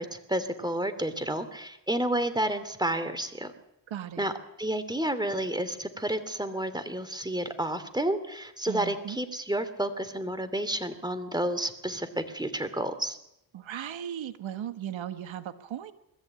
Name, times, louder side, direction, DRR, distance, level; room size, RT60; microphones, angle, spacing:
voice 1, 0.0-3.5 4.2-4.3 4.6-13.2, right 1 dB, 10° right, 9 dB, 2.7 m, -30 dB
voice 2, 3.9-4.3 8.7-9.2 13.5-15.9, right 10 dB, 80° right, 11 dB, 1.5 m, -37 dB
21.5 x 14.0 x 8.8 m, 0.83 s
cardioid pair, 65°, 46 cm